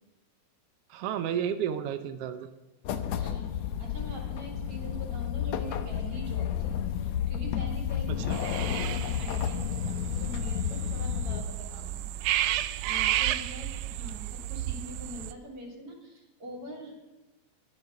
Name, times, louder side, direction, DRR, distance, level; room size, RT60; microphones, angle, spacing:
voice 1, 0.9-2.5 8.3-8.4, right 9 dB, 70° right, 8 dB, 1.5 m, -31 dB
sound 1, 2.8-11.4, left 9 dB, 75° left, 1.9 m, -31 dB
voice 2, 2.9-8.2 8.6-12.1 12.8-16.9, equal, 50° right, -2 dB, 3.9 m, -44 dB
sound 2, 8.3-15.3, right 13 dB, 90° right, 2.1 m, -32 dB
13.0 x 11.5 x 5.8 m, 1.1 s
omnidirectional pair, 3.4 m